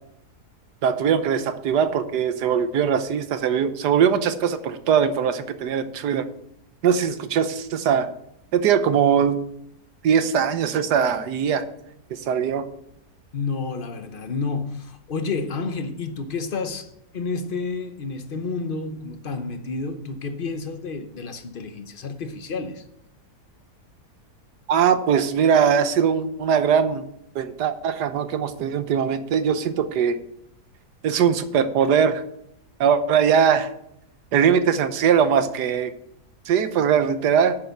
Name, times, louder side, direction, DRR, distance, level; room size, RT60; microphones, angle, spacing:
voice 1, 0.8-6.3 6.8-8.1 8.5-9.4 10.0-11.6 12.1-12.7 24.7-27.0 27.3-30.2 31.0-32.2 32.8-33.7 34.3-35.9 36.5-37.6, right 7 dB, 80° right, 1.5 m, -21 dB
voice 2, 13.3-22.8, left 4 dB, 40° left, 0.9 m, -30 dB
9.8 x 6.8 x 6.6 m
omnidirectional pair, 1.7 m